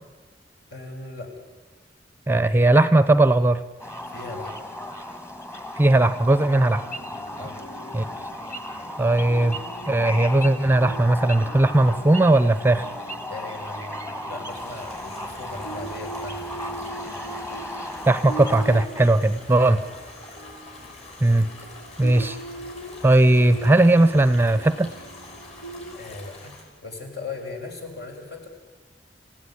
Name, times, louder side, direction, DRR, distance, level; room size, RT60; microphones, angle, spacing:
voice 1, 0.7-1.3 4.1-4.5 7.4-7.6 13.3-16.6 19.7-19.9 25.9-28.5, left 3 dB, 60° left, 2 dB, 5.9 m, -38 dB
voice 2, 2.3-3.6 5.8-6.8 7.9-8.0 9.0-9.6 9.9-12.8 18.1-19.8 21.2-21.5 22.0-22.4 23.0-24.9, right 2 dB, 10° right, 12 dB, 0.8 m, -18 dB
sound 1, 3.8-18.9, left 1 dB, 15° left, 2.0 m, -35 dB
sound 2, 6.8-26.0, right 2 dB, 85° left, 3.1 m, -41 dB
sound 3, 14.5-26.6, left 2 dB, 40° left, 7.0 m, -45 dB
29.0 x 16.5 x 9.9 m, 1.4 s
head